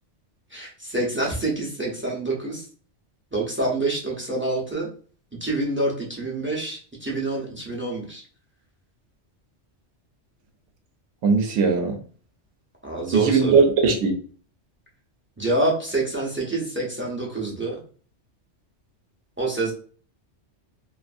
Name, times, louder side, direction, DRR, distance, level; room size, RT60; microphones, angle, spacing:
voice 1, 0.5-2.7 3.3-4.9 5.4-8.2 12.8-13.6 15.4-17.8 19.4-19.7, right 2 dB, 20° right, -2 dB, 0.3 m, -26 dB
voice 2, 11.2-12.0 13.1-14.1, right 4 dB, 80° right, 4 dB, 0.9 m, -19 dB
2.5 x 2.5 x 2.4 m, 0.42 s
omnidirectional pair, 1.2 m